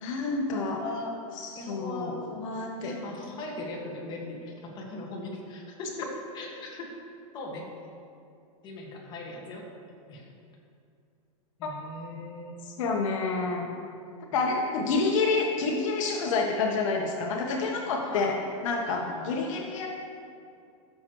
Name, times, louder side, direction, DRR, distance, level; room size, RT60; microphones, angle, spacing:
voice 1, 0.0-0.8 1.4-2.9 11.6-11.7 12.7-13.7 14.3-18.4 18.6-19.9, left 3 dB, 65° left, 1 dB, 1.0 m, -28 dB
voice 2, 0.5-1.2 1.5-2.2 2.8-6.1 6.3-6.9 7.3-7.7 8.6-9.7 10.1-10.3 11.6-12.6 14.2-14.4 17.9-18.3 18.9-19.3, left 2 dB, 25° left, -3 dB, 1.6 m, -39 dB
14.0 x 6.6 x 3.1 m, 2.4 s
supercardioid pair, 160°, 18 cm